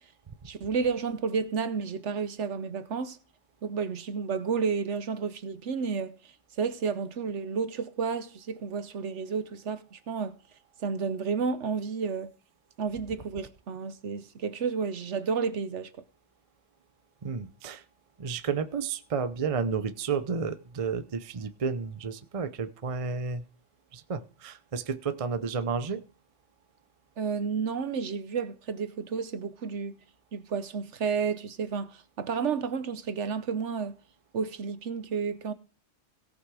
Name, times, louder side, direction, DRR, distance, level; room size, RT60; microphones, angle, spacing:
voice 1, 0.4-3.2 3.6-10.4 10.8-12.3 12.8-15.9 27.2-29.9 30.3-34.0 34.3-35.5, right 5 dB, 60° right, 1.1 m, -31 dB
voice 2, 17.2-17.8 18.2-23.4 23.9-26.0, right 5 dB, 35° right, 0.6 m, -31 dB
17.5 x 6.1 x 4.8 m
omnidirectional pair, 1.4 m